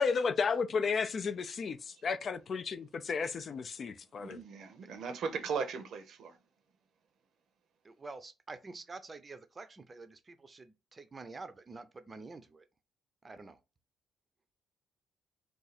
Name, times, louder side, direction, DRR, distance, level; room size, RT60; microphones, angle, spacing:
voice 1, 0.0-4.4, left 5 dB, 50° left, 0.3 m, -33 dB
voice 2, 4.1-6.4, right 5 dB, 70° right, 0.7 m, -38 dB
voice 3, 7.8-12.6 13.2-13.6, right 3 dB, 30° right, 0.5 m, -48 dB
2.6 x 2.3 x 4.0 m
cardioid pair, 90°, 0 cm